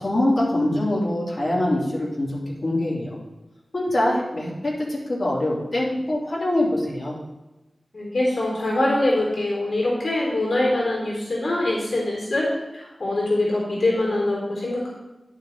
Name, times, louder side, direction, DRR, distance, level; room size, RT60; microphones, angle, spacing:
voice 1, 0.0-2.3 2.6-3.2 3.7-7.1, left 1 dB, 55° left, -5 dB, 3.0 m, -24 dB
voice 2, 7.9-12.5 12.7-14.9, left 1 dB, 75° left, -4 dB, 3.6 m, -23 dB
11.0 x 6.8 x 3.9 m, 1.0 s
wide cardioid pair, 90°, 0 cm